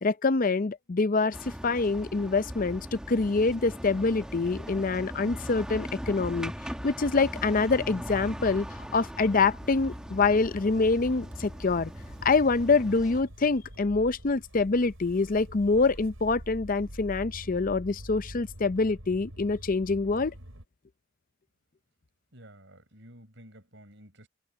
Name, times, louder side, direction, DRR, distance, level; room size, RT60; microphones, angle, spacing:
voice 1, 0.0-1.4 1.6-6.5 6.8-8.7 8.9-11.9 12.2-20.3, left 3 dB, 40° left, 0.5 m, -25 dB
sound 1, 1.3-13.2, equal, 5° right, 1.2 m, -40 dB
Motor vehicle (road) / Engine starting, 8.2-20.7, equal, 75° right, 5.6 m, -46 dB
voice 2, 22.3-24.3, right 1 dB, 60° right, 7.4 m, -52 dB
head